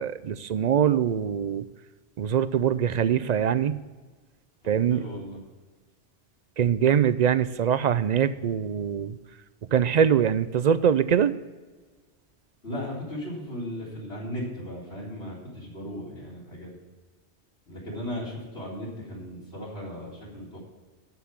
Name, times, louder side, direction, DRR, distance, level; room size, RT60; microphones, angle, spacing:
voice 1, 0.0-1.6 2.2-3.8 4.7-5.0 6.6-9.2 9.7-11.3, right 8 dB, 55° right, 15 dB, 0.5 m, -23 dB
voice 2, 4.6-5.4 12.6-16.7 17.7-20.6, equal, 70° left, -5 dB, 4.1 m, -36 dB
13.0 x 5.8 x 7.4 m, 1.3 s
omnidirectional pair, 1.1 m